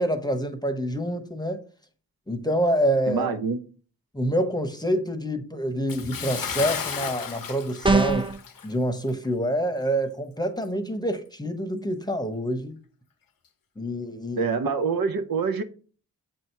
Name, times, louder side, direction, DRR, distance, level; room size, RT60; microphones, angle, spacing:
voice 1, 0.0-1.6 2.3-3.4 4.1-8.3 8.6-12.7 13.8-14.6, equal, 10° left, 0.9 m, -27 dB
voice 2, 3.1-3.6 14.4-15.6, right 5 dB, 80° right, 0.7 m, -25 dB
Bathtub (filling or washing) / Splash splatter, 5.9-8.8 9.1-9.3 9.8-9.9, left 7 dB, 75° left, 0.7 m, -33 dB
sound 1, 7.8-8.4, right 3 dB, 15° right, 0.6 m, -21 dB
7.5 x 2.8 x 4.5 m
cardioid pair, 45°, 35 cm